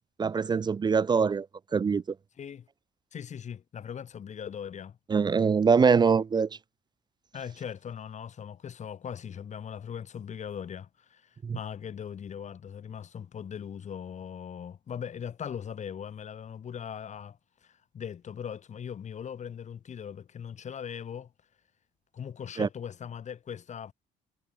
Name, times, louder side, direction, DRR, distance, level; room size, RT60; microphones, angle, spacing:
voice 1, 0.2-1.5 1.7-2.0 5.1-6.5 11.4-11.6 22.6-22.7, right 5 dB, 25° right, 0.6 m, -23 dB
voice 2, 2.4-2.7 3.1-5.0 7.3-21.3 22.1-23.9, left 8 dB, 45° left, 3.9 m, -40 dB
cardioid pair, 110°, 17 cm